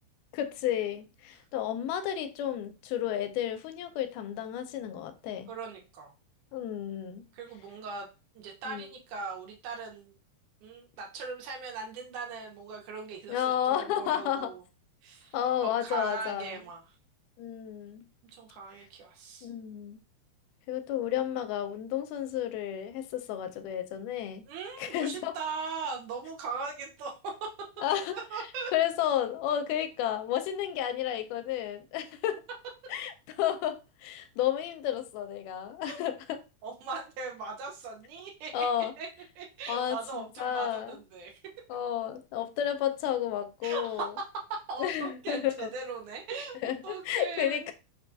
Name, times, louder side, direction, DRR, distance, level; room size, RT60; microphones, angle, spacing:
voice 1, 0.3-5.5 6.5-7.3 8.7-8.9 13.3-14.5 15.3-16.6 17.4-18.1 19.4-20.0 20.7-24.5 24.8-25.3 27.8-28.2 28.7-32.4 32.9-36.4 38.5-38.9 39.7-41.0 41.7-44.1 44.8-45.7 46.6-47.7, left 10 dB, 85° left, 2.1 m, -32 dB
voice 2, 5.5-6.1 7.3-8.1 8.4-10.1 10.6-14.6 15.0-15.4 15.6-16.8 18.3-19.5 24.5-27.7 28.1-28.7 35.9-36.0 36.6-38.7 39.0-39.1 39.4-41.3 43.6-44.1 44.5-47.7, right 4 dB, 80° right, 2.3 m, -39 dB
5.1 x 2.3 x 2.6 m
omnidirectional pair, 3.7 m